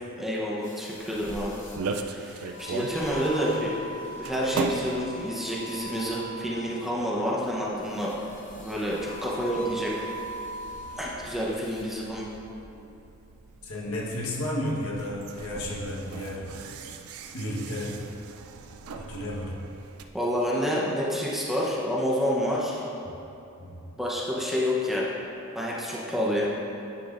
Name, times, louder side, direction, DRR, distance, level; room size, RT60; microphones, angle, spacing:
voice 1, 0.2-1.6 2.0-3.8 4.2-8.1 8.6-9.9 11.0-12.3 20.1-22.8 24.0-25.1 25.5-26.5, equal, ahead, -5 dB, 0.8 m, -28 dB
sound 1, 0.6-1.8 2.5-6.7 7.9-11.1 11.6-11.8, equal, 35° left, 0.8 m, -41 dB
sound 2, 1.0-20.1, right 4 dB, 90° right, 0.4 m, -40 dB
voice 2, 13.6-16.9 17.3-18.0 19.0-19.6 23.6-23.8, left 1 dB, 80° left, -4 dB, 1.3 m, -33 dB
10.0 x 6.0 x 2.5 m, 2.8 s
head